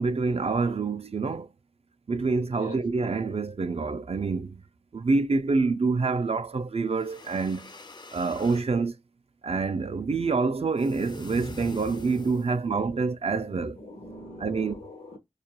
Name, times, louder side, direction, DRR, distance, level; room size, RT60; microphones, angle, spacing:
voice 1, 0.0-1.5 2.1-4.6 4.9-7.7 8.1-9.0 9.4-13.8 14.4-14.8, right 4 dB, 50° right, 0.4 m, -27 dB
sound 1, 6.9-8.7 10.8-12.7, left 3 dB, 35° left, 0.4 m, -44 dB
voice 2, 12.0-12.8 13.4-15.2, left 1 dB, 75° left, 0.7 m, -44 dB
2.3 x 2.1 x 2.8 m
wide cardioid pair, 40°, 13 cm